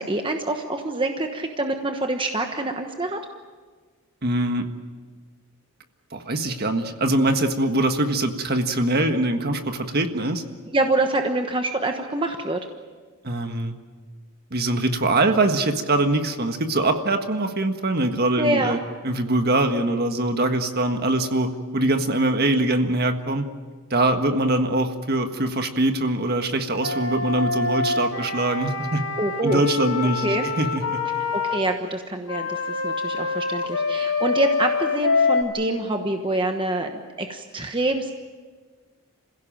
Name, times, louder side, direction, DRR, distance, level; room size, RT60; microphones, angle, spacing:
voice 1, 0.0-3.2 10.7-12.6 18.4-18.8 29.2-29.6 30.2-30.5 31.3-38.1, right 2 dB, 20° right, 4 dB, 1.2 m, -26 dB
voice 2, 4.2-4.7 6.1-10.4 13.2-13.8 14.5-18.8 19.0-23.5 23.9-29.0 29.4-31.1, right 2 dB, 45° right, 6 dB, 1.6 m, -23 dB
Wind instrument woodwind instrument, 26.8-31.6 32.3-35.4, left 4 dB, 65° left, 2.7 m, -25 dB
27.0 x 16.5 x 9.0 m, 1.5 s
head